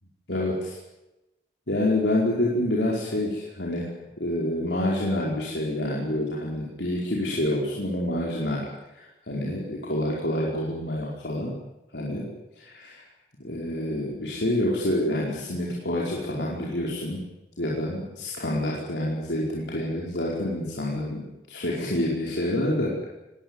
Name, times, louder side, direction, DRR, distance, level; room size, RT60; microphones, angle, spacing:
voice 1, 0.3-0.8 1.7-3.9 4.2-8.7 8.9-11.6 11.9-12.3 12.6-13.0 13.4-17.2 17.6-23.1, left 1 dB, 85° left, -3 dB, 4.9 m, -27 dB
21.0 x 19.5 x 9.8 m, 0.98 s
head